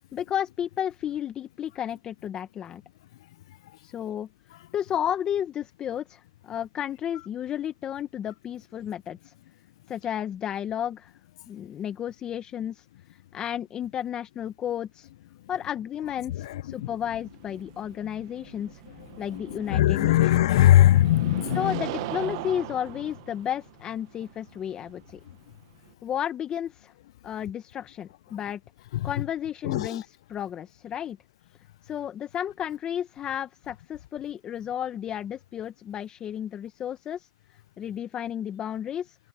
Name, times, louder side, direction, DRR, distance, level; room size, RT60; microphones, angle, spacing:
voice 1, 0.1-2.8 3.8-4.3 4.7-9.3 9.9-11.1 11.5-15.1 15.5-18.8 19.2-20.4 21.5-25.2 26.0-26.9 27.2-28.6 29.0-31.2 31.8-37.3 37.8-39.2, left 10 dB, 30° left, 0.7 m, -32 dB
sound 1, 17.1-25.9, right 20 dB, 70° right, 0.9 m, -40 dB
voice 2, 19.5-21.8 29.6-30.0, left 13 dB, 85° left, 0.4 m, -20 dB
supercardioid pair, 135°, 3 cm